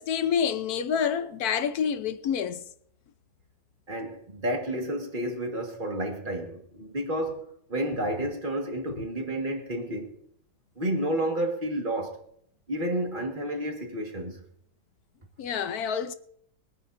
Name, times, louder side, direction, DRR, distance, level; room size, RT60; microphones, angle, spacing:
voice 1, 0.0-2.6 15.4-16.1, left 7 dB, 60° left, 1.1 m, -28 dB
voice 2, 3.9-10.2 10.8-12.2 12.7-14.4, right 1 dB, 30° right, 1.8 m, -31 dB
22.5 x 9.7 x 2.6 m
omnidirectional pair, 2.0 m